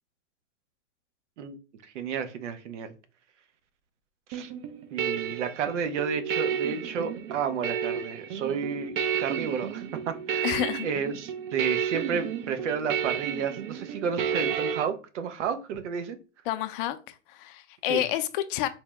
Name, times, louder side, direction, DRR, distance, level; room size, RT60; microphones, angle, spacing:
voice 1, 1.9-2.9 4.3-4.5 4.9-10.5 10.8-16.2 17.9-18.0, right 6 dB, 75° right, 0.8 m, -31 dB
sound 1, 4.3-14.8, right 8 dB, 45° right, 0.6 m, -31 dB
voice 2, 10.4-10.9 16.5-18.7, left 13 dB, 45° left, 0.5 m, -29 dB
4.5 x 2.1 x 3.4 m
hypercardioid pair, 120°, 36 cm